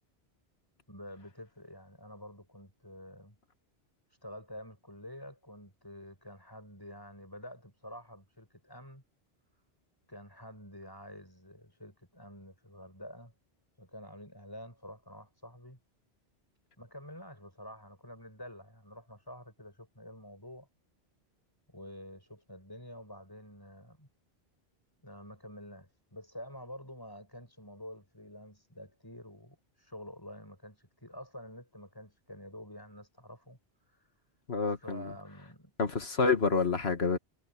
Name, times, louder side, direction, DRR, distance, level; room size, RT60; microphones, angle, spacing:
voice 1, 0.9-3.4 4.1-9.0 10.1-13.3 13.8-15.8 16.8-20.7 21.7-24.1 25.0-34.1 34.8-35.7, equal, 20° left, 7.5 m, -48 dB
voice 2, 34.5-35.1 35.8-37.2, left 4 dB, 75° left, 2.0 m, -28 dB
omnidirectional pair, 1.1 m